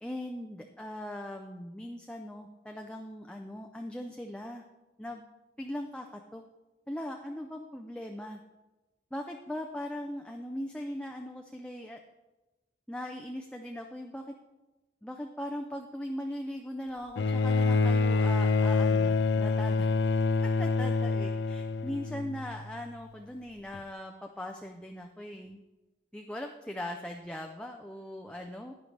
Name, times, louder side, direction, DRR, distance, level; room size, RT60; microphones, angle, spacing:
voice 1, 0.0-4.6 5.0-5.3 5.6-6.4 6.9-8.4 9.1-12.0 12.9-14.3 15.0-19.9 20.4-25.6 26.1-28.7, left 1 dB, 5° left, 2 dB, 0.4 m, -40 dB
Bowed string instrument, 17.2-22.6 23.7-23.8, left 4 dB, 75° left, 0.3 m, -26 dB
11.0 x 9.4 x 3.3 m, 1.1 s
head